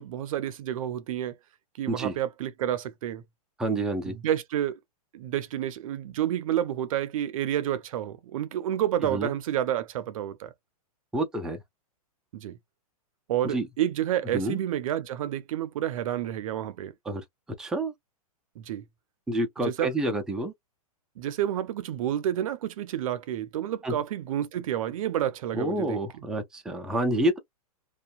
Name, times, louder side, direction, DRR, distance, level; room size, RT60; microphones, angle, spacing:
voice 1, 0.0-1.4 1.8-3.2 4.1-4.8 5.1-10.5 12.3-12.6 13.3-16.9 18.6-18.9 19.6-19.9 21.2-26.2, right 11 dB, 60° right, 0.5 m, -29 dB
voice 2, 3.6-4.2 9.0-9.3 11.1-11.6 13.4-13.7 14.3-14.6 17.1-17.2 17.6-17.9 19.3-20.5 23.8-23.9 25.5-27.4, right 1 dB, 5° right, 0.4 m, -28 dB
2.6 x 2.2 x 2.3 m
hypercardioid pair, 140°, 19 cm